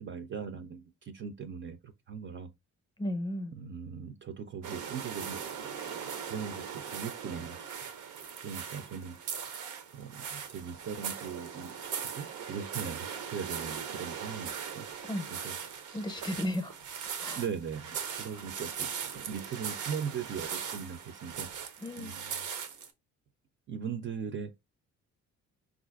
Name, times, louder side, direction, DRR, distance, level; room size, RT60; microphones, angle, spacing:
voice 1, 0.0-2.5 3.5-5.4 6.3-7.8 8.4-9.2 9.9-14.9 15.3-15.6 17.4-21.5 22.0-22.4 23.7-24.5, right 7 dB, 40° right, 0.4 m, -39 dB
voice 2, 3.0-3.5 15.1-15.5 15.9-16.7 17.2-17.4 21.8-22.1, left 1 dB, 15° left, 0.6 m, -34 dB
sound 1, 4.6-22.9, right 7 dB, 80° right, 0.6 m, -39 dB
3.7 x 2.4 x 2.3 m
cardioid pair, 90°, 30 cm